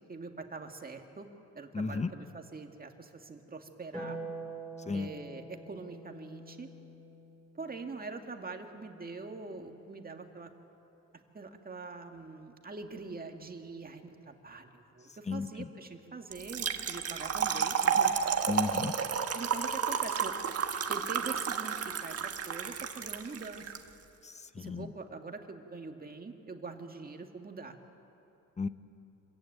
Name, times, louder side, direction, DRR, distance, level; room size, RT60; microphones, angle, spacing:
voice 1, 0.1-1.3 1.5-4.2 4.9-6.7 7.5-10.5 11.3-18.1 19.3-20.5 20.9-23.7 24.6-27.7, right 4 dB, 30° right, 4 dB, 2.0 m, -44 dB
voice 2, 1.7-2.1 4.9-5.1 15.3-15.7 18.5-18.9 24.2-24.9 28.6-28.7, left 4 dB, 20° left, 12 dB, 0.9 m, -34 dB
Harp, 3.9-10.4 12.1-13.1, right 2 dB, ahead, 6.6 m, -47 dB
Trickle dribble / Fill (with liquid), 16.3-23.8, right 7 dB, 50° right, 1.5 m, -31 dB
25.5 x 15.0 x 9.2 m, 2.9 s
cardioid pair, 90°, 30 cm